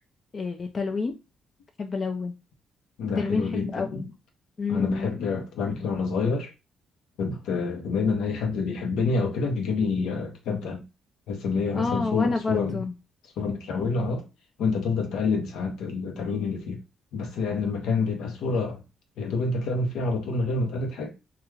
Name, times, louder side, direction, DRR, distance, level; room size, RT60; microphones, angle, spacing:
voice 1, 0.3-1.1 1.8-2.3 3.2-4.1 4.6-5.2 11.7-12.9, left 4 dB, 35° left, 0.3 m, -29 dB
voice 2, 3.0-4.0 4.7-6.5 7.2-10.8 11.3-12.8 13.4-14.3 14.6-16.8 17.1-18.8 19.2-21.1, left 4 dB, 85° left, 0.7 m, -27 dB
2.3 x 2.2 x 3.1 m
cardioid pair, 105°, 0 cm